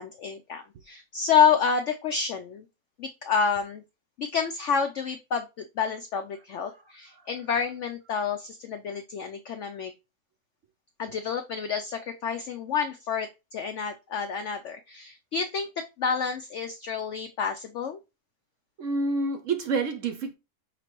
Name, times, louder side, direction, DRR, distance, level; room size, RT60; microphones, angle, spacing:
voice 1, 0.0-2.7 3.0-3.8 4.2-9.9 11.0-18.0, left 6 dB, 80° left, 0.6 m, -28 dB
voice 2, 18.8-20.3, right 3 dB, 65° right, 0.8 m, -28 dB
5.7 x 3.1 x 2.9 m
omnidirectional pair, 1.8 m